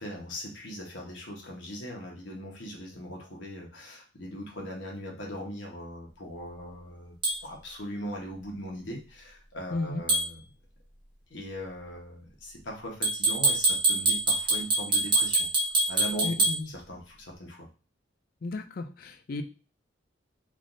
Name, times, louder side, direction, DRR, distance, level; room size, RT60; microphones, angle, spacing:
voice 1, 0.0-7.1 7.4-10.4 11.3-15.5 15.9-17.7, equal, 70° left, -1 dB, 1.0 m, -40 dB
sound 1, 7.2-7.4 10.1-10.3 13.0-16.6, right 2 dB, 25° right, 1.1 m, -24 dB
voice 2, 9.7-10.0 16.2-16.7 18.4-19.4, left 3 dB, 50° left, 7 dB, 0.4 m, -33 dB
3.4 x 2.5 x 2.5 m, 0.35 s
head